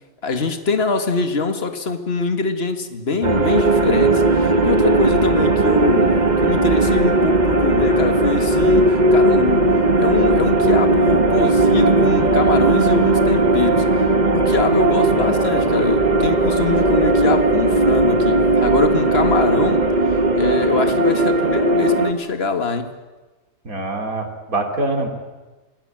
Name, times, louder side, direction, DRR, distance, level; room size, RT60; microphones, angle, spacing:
voice 1, 0.2-6.1 6.4-13.9 14.3-19.8 20.4-22.9, left 4 dB, 45° left, 7 dB, 2.1 m, -23 dB
sound 1, 3.2-22.1, right 2 dB, 30° right, 1.6 m, -17 dB
voice 2, 23.7-25.1, right 2 dB, 80° right, 3 dB, 3.5 m, -24 dB
28.0 x 19.5 x 9.0 m, 1.2 s
omnidirectional pair, 1.5 m